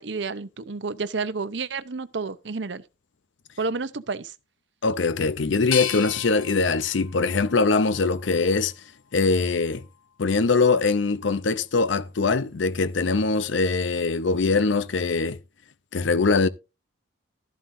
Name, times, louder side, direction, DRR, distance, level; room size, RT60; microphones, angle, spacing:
voice 1, 0.0-2.8 3.6-4.3, right 4 dB, 65° right, 0.8 m, -30 dB
voice 2, 4.8-8.7 9.1-9.8 10.2-15.4 15.9-16.5, left 4 dB, 75° left, 0.6 m, -22 dB
sound 1, 5.7-8.6 9.2-10.0, left 10 dB, 90° left, 1.3 m, -35 dB
13.0 x 11.5 x 2.6 m
head